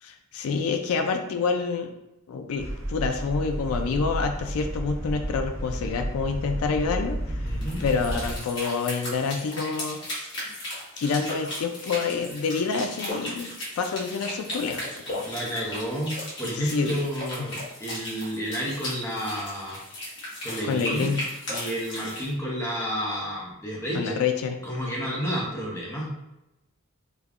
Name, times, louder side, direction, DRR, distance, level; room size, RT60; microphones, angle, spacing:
voice 1, 0.0-1.9 2.3-7.4 7.8-10.0 11.0-15.2 16.4-17.0 17.4-17.6 20.6-21.2 23.9-24.6, left 5 dB, 85° left, 6 dB, 0.3 m, -28 dB
sound 1, 2.6-8.4, right 1 dB, 60° right, 0.9 m, -32 dB
voice 2, 7.4-7.8 15.2-19.8 20.4-21.1 21.5-24.2 24.6-26.1, equal, 15° left, -4 dB, 0.7 m, -31 dB
sound 2, 7.5-22.3, left 1 dB, 55° left, 1.4 m, -36 dB
5.0 x 2.2 x 2.4 m, 0.92 s
head